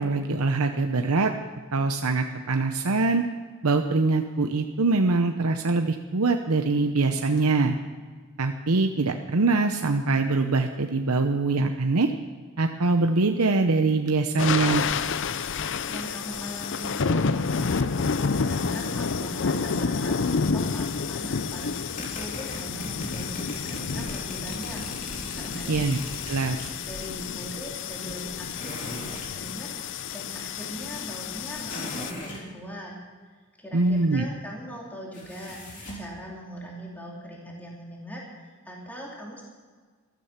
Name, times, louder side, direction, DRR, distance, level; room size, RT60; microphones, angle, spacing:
voice 1, 0.0-1.3 1.7-3.2 3.6-7.7 8.4-12.1 12.6-14.8 25.7-26.0 26.3-26.6 33.7-34.2, right 3 dB, 85° right, 5 dB, 0.8 m, -23 dB
sound 1, 14.4-32.1, left 5 dB, 55° left, 0.5 m, -29 dB
voice 2, 15.9-25.8 26.7-32.9 33.6-39.4, right 1 dB, 10° left, -3 dB, 2.8 m, -40 dB
sound 2, 20.9-27.4, equal, 10° right, 2.1 m, -49 dB
sound 3, 21.6-26.7 28.5-29.4 31.7-32.4 35.1-36.1, left 1 dB, 35° left, 3.6 m, -39 dB
15.0 x 13.5 x 5.8 m, 1.5 s
head